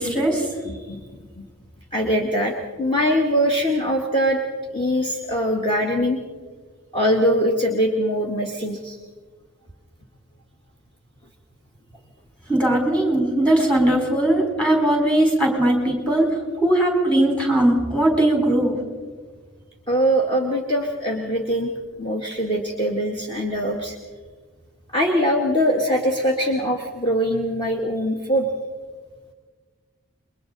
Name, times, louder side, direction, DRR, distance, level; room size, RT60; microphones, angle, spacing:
voice 1, 0.0-0.5 12.5-16.3 16.6-18.7, right 1 dB, 5° left, 0 dB, 4.3 m, -19 dB
voice 2, 0.6-1.4 1.9-4.4 4.7-6.2 6.9-9.0 19.9-21.7 22.0-24.0 24.9-28.5, equal, 25° left, 1 dB, 1.6 m, -22 dB
28.5 x 22.5 x 4.0 m, 1.5 s
head